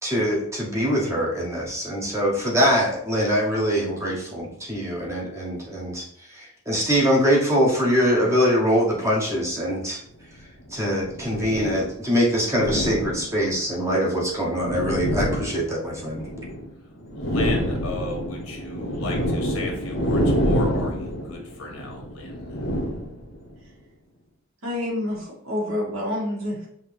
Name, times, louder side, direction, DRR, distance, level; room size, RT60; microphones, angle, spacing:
voice 1, 0.0-6.1 6.3-10.0 10.7-16.2, equal, 15° right, -3 dB, 0.8 m, -23 dB
sound 1, 9.3-9.4 10.4-11.9 12.5-13.6 14.3-16.7 17.0-23.5, equal, 60° left, 0.9 m, -27 dB
voice 2, 17.2-22.6, left 2 dB, 90° left, 0 dB, 1.3 m, -35 dB
voice 3, 24.6-26.7, left 1 dB, 80° right, -4 dB, 1.8 m, -28 dB
5.5 x 2.7 x 3.2 m, 0.68 s
head